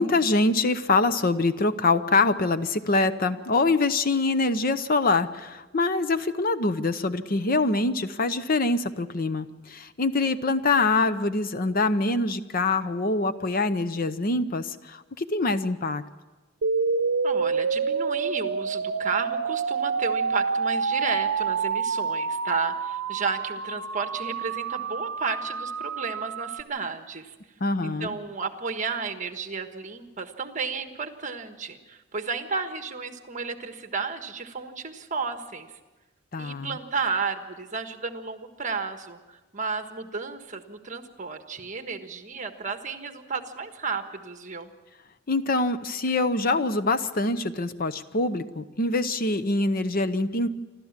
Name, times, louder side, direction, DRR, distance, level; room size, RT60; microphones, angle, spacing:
voice 1, 0.0-16.0 27.6-28.1 36.3-36.7 45.3-50.5, left 3 dB, 45° left, 12 dB, 0.8 m, -24 dB
sound 1, 16.6-26.6, right 5 dB, 80° right, 0.7 m, -28 dB
voice 2, 17.2-27.3 27.8-35.8 36.4-44.7, right 4 dB, 40° right, 7 dB, 1.4 m, -32 dB
27.0 x 13.0 x 7.4 m, 1.2 s
head